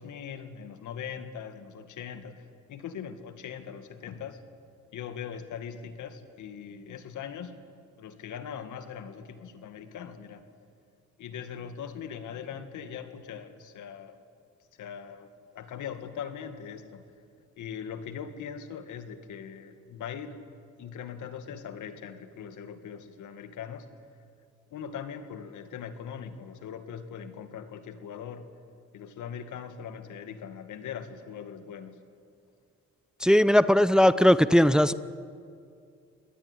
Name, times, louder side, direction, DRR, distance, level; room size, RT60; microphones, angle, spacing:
voice 1, 0.0-2.4 2.7-4.4 4.9-7.6 8.0-10.4 11.2-14.2 14.8-15.3 15.6-17.0 17.6-20.4 20.8-23.9 24.7-28.5 28.9-32.0, left 7 dB, 75° left, 9 dB, 2.1 m, -40 dB
voice 2, 33.2-34.9, equal, ahead, 15 dB, 0.7 m, -19 dB
26.0 x 19.5 x 9.9 m, 2.4 s
cardioid pair, 90°, 30 cm